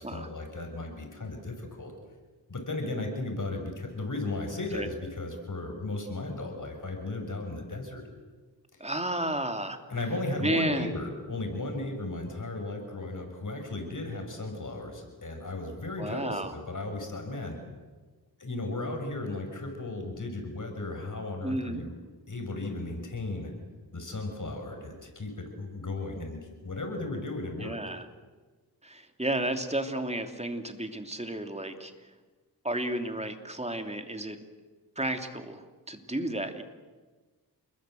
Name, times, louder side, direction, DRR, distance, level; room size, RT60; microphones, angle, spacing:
voice 1, 0.0-1.9 2.5-8.0 8.7-8.8 9.9-17.6 18.4-22.0 22.3-23.5 23.9-27.8, left 2 dB, 50° left, 3 dB, 6.3 m, -35 dB
voice 2, 8.8-9.8 10.4-11.0 16.0-16.5 21.4-21.8 27.6-28.1 28.8-31.9 32.6-34.4 35.0-36.6, right 1 dB, 15° right, 6 dB, 3.0 m, -32 dB
28.5 x 21.5 x 7.9 m, 1.3 s
cardioid pair, 55°, 40 cm